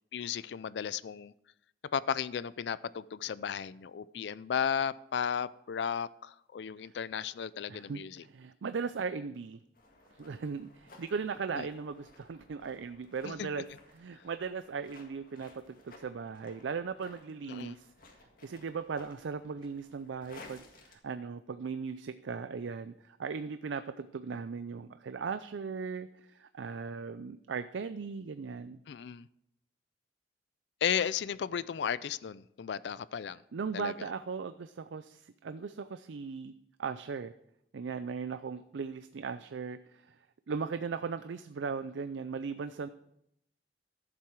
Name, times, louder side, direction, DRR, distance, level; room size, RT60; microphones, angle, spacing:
voice 1, 0.1-1.3 1.9-8.2 11.6-11.7 13.2-13.5 17.5-17.7 28.9-29.3 30.8-33.4 33.7-34.1, left 8 dB, 70° left, 0.4 m, -34 dB
voice 2, 7.7-9.6 10.1-13.7 13.9-17.9 18.4-28.8 33.5-36.5 36.8-37.3 37.7-40.2 40.5-42.9, right 5 dB, 90° right, 0.4 m, -38 dB
sound 1, 9.7-20.9, left 3 dB, 50° left, 1.9 m, -57 dB
13.0 x 7.5 x 4.7 m
head